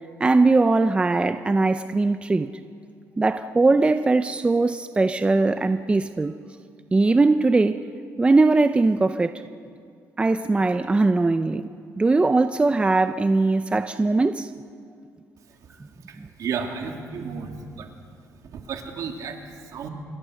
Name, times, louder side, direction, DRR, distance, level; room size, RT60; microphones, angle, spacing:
voice 1, 0.2-2.5 3.2-6.4 6.9-7.8 8.2-9.4 10.2-11.7 12.0-14.5 16.2-16.3, right 3 dB, 20° right, 0.6 m, -20 dB
voice 2, 16.1-17.9 18.5-19.9, right 6 dB, 70° right, 2.8 m, -33 dB
27.0 x 22.5 x 6.5 m
cardioid pair, 120°, 6 cm